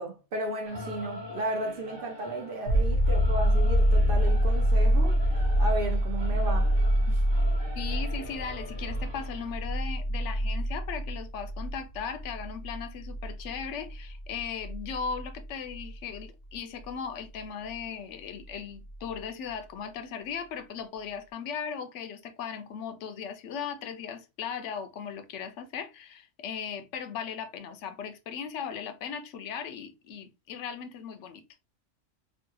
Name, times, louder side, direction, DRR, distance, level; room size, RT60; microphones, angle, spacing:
voice 1, 0.0-5.2 5.6-6.8 7.1-7.2, right 1 dB, 60° right, 0.7 m, -34 dB
Singing / Musical instrument, 0.6-9.5, left 2 dB, 25° right, 1.0 m, -44 dB
sound 1, 2.7-16.2 18.9-19.0, equal, 65° left, 1.4 m, -26 dB
voice 2, 7.8-31.4, left 7 dB, 80° left, 0.9 m, -37 dB
3.0 x 2.2 x 3.0 m
omnidirectional pair, 1.2 m